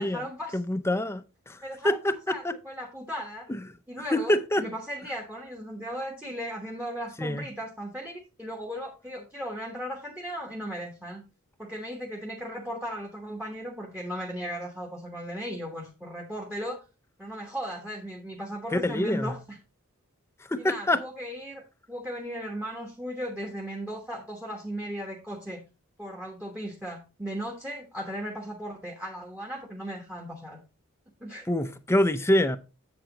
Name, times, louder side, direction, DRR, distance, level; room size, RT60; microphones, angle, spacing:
voice 1, 0.0-0.6 1.6-2.0 2.3-3.5 3.9-8.1 8.4-11.2 11.6-16.8 17.2-19.6 20.6-21.6 21.9-25.6 26.0-30.6 31.2-31.5, equal, 10° right, 1.2 m, -36 dB
voice 2, 0.5-1.6 1.8-2.1 2.4-2.5 4.1-4.6 7.2-7.5 18.7-19.3 20.5-21.0 31.5-32.6, left 1 dB, 10° left, 0.6 m, -25 dB
7.8 x 7.6 x 2.9 m
head